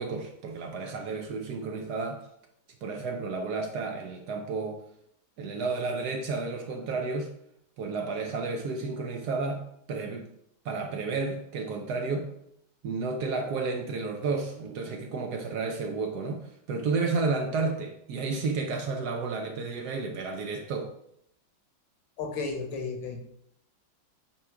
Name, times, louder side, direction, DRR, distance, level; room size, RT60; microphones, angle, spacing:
voice 1, 0.0-2.3 2.8-4.8 5.4-7.3 7.8-10.3 10.6-12.3 12.8-20.9, right 4 dB, 70° right, 3 dB, 1.1 m, -31 dB
voice 2, 22.2-23.2, left 4 dB, 70° left, 4 dB, 1.7 m, -33 dB
8.3 x 3.5 x 3.4 m, 0.73 s
omnidirectional pair, 2.2 m